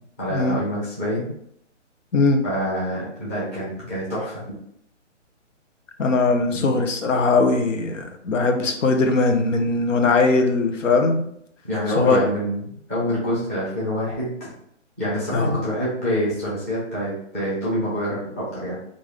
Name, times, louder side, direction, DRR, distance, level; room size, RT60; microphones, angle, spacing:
voice 1, 0.2-1.3 2.4-4.4 6.5-6.7 11.6-14.5 15.0-18.8, equal, 10° left, -9 dB, 0.7 m, -26 dB
voice 2, 6.0-11.2 12.0-12.3 15.3-15.6, left 3 dB, 85° left, 5 dB, 0.8 m, -20 dB
3.5 x 2.6 x 3.3 m, 0.70 s
hypercardioid pair, 170°, 37 cm